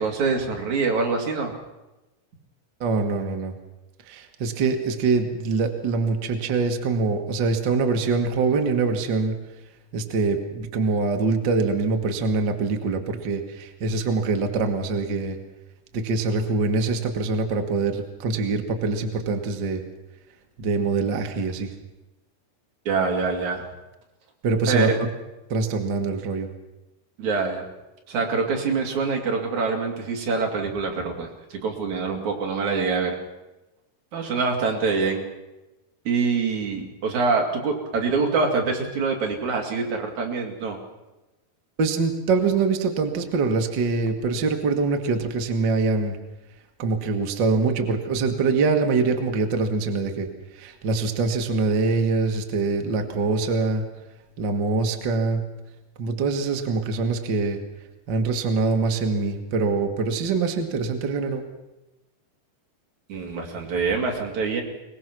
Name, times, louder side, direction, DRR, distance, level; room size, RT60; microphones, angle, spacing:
voice 1, 0.0-1.5 22.9-23.6 24.7-25.0 27.2-27.7 28.1-33.1 34.1-35.3 36.1-40.8 63.1-64.6, right 4 dB, 50° right, 1 dB, 3.7 m, -25 dB
voice 2, 2.8-3.5 4.0-9.3 9.9-15.4 15.9-19.8 20.6-21.7 24.4-24.9 25.5-26.5 41.8-46.2 46.8-53.8 54.4-55.4 56.0-57.6 58.1-61.4, right 4 dB, 70° right, 4 dB, 1.0 m, -24 dB
23.0 x 20.0 x 6.2 m, 1.0 s
omnidirectional pair, 4.8 m